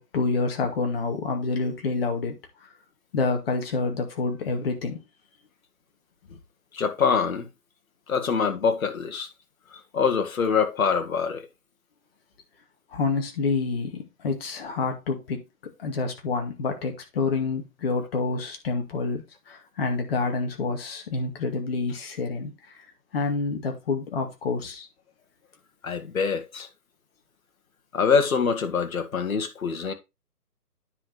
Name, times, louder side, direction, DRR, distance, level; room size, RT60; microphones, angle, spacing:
voice 1, 0.0-2.4 3.1-5.0 6.3-6.4 12.9-15.4 15.8-22.5 23.1-24.9, left 4 dB, 40° left, 2.2 m, -28 dB
voice 2, 6.7-7.5 8.1-9.3 9.9-11.5 25.8-26.7 27.9-29.9, left 6 dB, 55° left, 1.9 m, -24 dB
9.8 x 5.2 x 4.1 m
hypercardioid pair, 155°, 48 cm